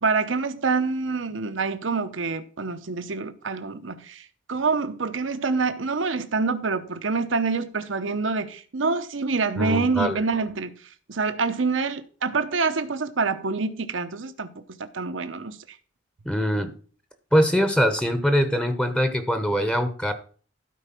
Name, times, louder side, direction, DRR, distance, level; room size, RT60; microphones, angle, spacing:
voice 1, 0.0-10.7 11.1-15.6, right 4 dB, 70° right, 0.9 m, -26 dB
voice 2, 9.6-10.2 16.2-16.7 17.3-20.1, equal, 5° left, 1.0 m, -22 dB
12.5 x 4.7 x 6.0 m
head